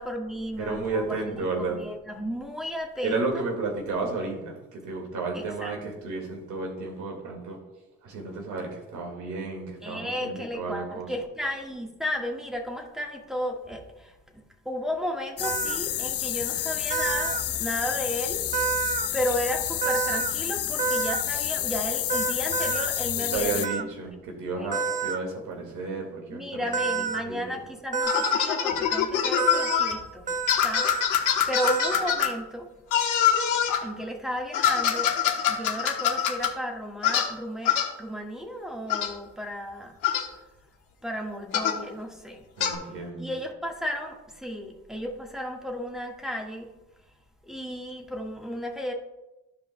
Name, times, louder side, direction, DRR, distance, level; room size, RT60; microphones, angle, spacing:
voice 1, 0.0-1.2 1.6-3.4 5.3-5.7 9.8-18.5 19.1-23.9 24.6-24.7 26.3-32.7 33.7-35.1 35.5-39.9 41.0-42.4 43.2-46.7 47.5-48.9, equal, ahead, 1 dB, 1.5 m, -34 dB
voice 2, 0.6-1.8 3.0-7.6 8.0-11.1 23.2-27.6 42.6-43.3, right 3 dB, 80° right, 1 dB, 1.9 m, -32 dB
sound 1, 15.4-23.7, left 12 dB, 50° left, 0.5 m, -29 dB
sound 2, 15.4-15.8 16.9-17.4 18.5-19.1 19.8-20.3 20.8-21.2 22.1-22.9 23.6-23.8 24.7-25.2 26.7-27.2 27.9-28.4 29.4-29.8 30.3-30.5 30.8-31.1 31.6-32.1, right 6 dB, 25° right, 0.4 m, -28 dB
sound 3, 28.0-29.9 30.5-32.3 32.9-33.8 34.5-36.5 37.0-37.3 37.6-37.9 38.9-39.1 40.0-40.3 41.5-41.8 42.6-42.8, left 9 dB, 85° left, 1.2 m, -24 dB
14.5 x 5.0 x 2.2 m, 0.98 s
cardioid pair, 90°, 30 cm